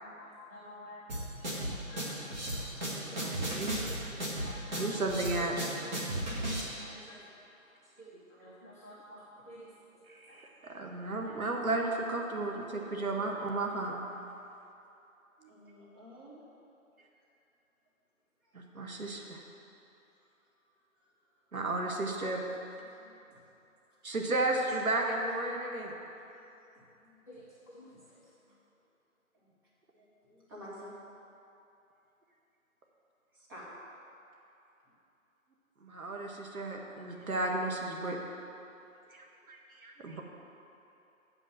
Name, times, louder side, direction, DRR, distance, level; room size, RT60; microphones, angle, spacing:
voice 1, 0.0-1.0 1.4-2.7 3.1-3.2 3.8-4.0 4.4-4.9 6.8-7.2 8.0-8.1 8.4-9.7 10.3-10.4 11.1-11.3 27.3-27.4 27.7-27.9, left 1 dB, 10° left, -11 dB, 0.7 m, -51 dB
sound 1, 1.1-6.6, right 1 dB, 30° right, 1.7 m, -35 dB
voice 2, 2.8-3.7 4.7-5.7 10.1-14.0 15.4-15.5 18.5-19.4 21.5-22.4 24.0-25.9 35.8-38.2 39.1-40.2, right 2 dB, 75° right, 0 dB, 1.5 m, -34 dB
voice 3, 15.5-16.4 18.4-18.5 20.9-21.0 22.8-23.7 25.9-26.3 26.6-26.7 27.0-27.2 27.5-28.5 29.3-29.5 29.9-30.9 33.3-33.7, equal, 15° right, -8 dB, 1.5 m, -53 dB
8.1 x 5.5 x 7.6 m, 2.8 s
figure-of-eight pair, 160°, 42 cm